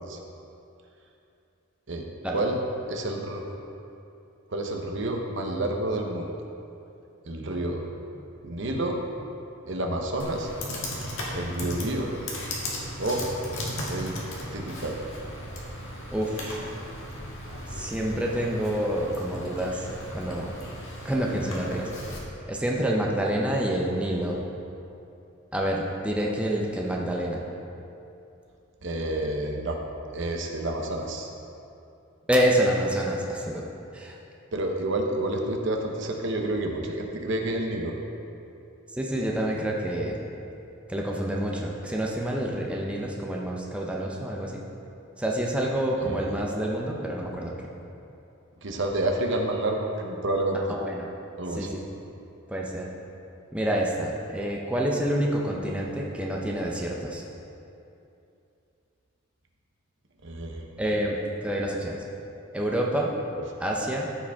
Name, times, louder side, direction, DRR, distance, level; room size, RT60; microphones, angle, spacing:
voice 1, 2.9-3.4 4.5-6.3 7.2-7.9 8.4-9.0 9.7-10.5 11.3-12.1 13.0-13.3 13.9-14.2 14.5-15.1 28.8-29.8 30.1-31.3 34.5-37.9 46.0-46.4 48.6-50.6 51.4-51.7 60.2-60.7, right 1 dB, 60° right, 2 dB, 0.9 m, -29 dB
Computer keyboard, 10.2-22.2, left 1 dB, 70° left, 1.6 m, -36 dB
voice 2, 16.1-16.7 17.7-20.6 21.0-22.2 22.5-24.4 25.5-27.4 32.3-33.6 33.9-34.2 38.9-40.3 40.9-44.6 45.2-47.5 50.7-51.1 51.6-51.8 52.5-52.9 53.5-57.2 60.8-62.0 62.5-63.1 63.6-64.1, right 1 dB, 5° right, -2 dB, 0.7 m, -28 dB
14.0 x 5.1 x 3.5 m, 2.7 s
head